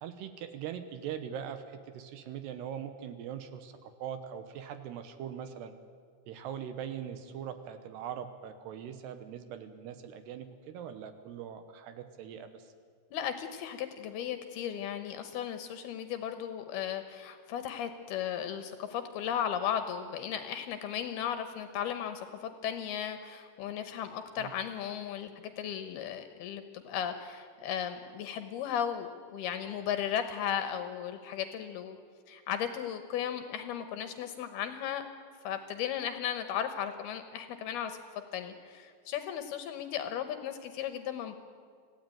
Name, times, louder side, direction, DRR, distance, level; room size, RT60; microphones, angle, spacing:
voice 1, 0.0-5.7 6.3-12.7 24.4-24.5, right 9 dB, 75° right, 9 dB, 2.9 m, -41 dB
voice 2, 13.1-25.3 25.6-32.0 32.3-35.1 35.4-38.0 38.3-41.3, left 9 dB, 70° left, 9 dB, 2.6 m, -35 dB
26.0 x 16.0 x 9.2 m, 2.1 s
omnidirectional pair, 5.3 m